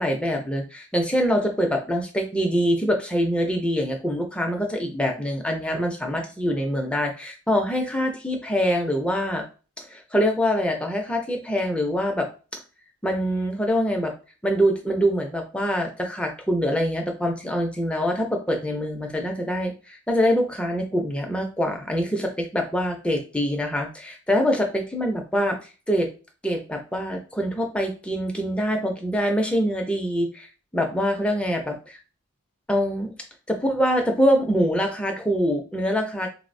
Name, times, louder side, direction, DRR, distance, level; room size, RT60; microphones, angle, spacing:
voice 1, 0.0-9.4 9.8-12.3 13.0-14.1 14.4-25.6 25.9-26.1 26.4-32.0 32.7-33.1 33.6-36.3, equal, 5° left, 2 dB, 0.4 m, -24 dB
3.8 x 2.0 x 2.5 m, 0.34 s
head